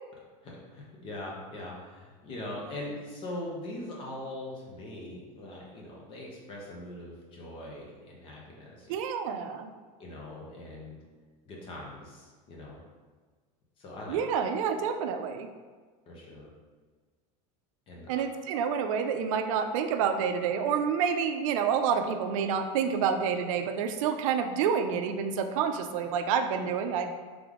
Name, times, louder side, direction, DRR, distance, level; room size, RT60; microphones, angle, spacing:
voice 1, 0.4-8.9 10.0-11.0 11.5-12.8 13.8-14.2 16.1-16.5 17.9-18.2, left 1 dB, 30° left, -3 dB, 0.9 m, -41 dB
voice 2, 8.9-9.7 14.1-15.5 18.1-27.1, right 7 dB, 80° right, 7 dB, 0.4 m, -28 dB
3.4 x 3.4 x 3.6 m, 1.5 s
supercardioid pair, 165°, 17 cm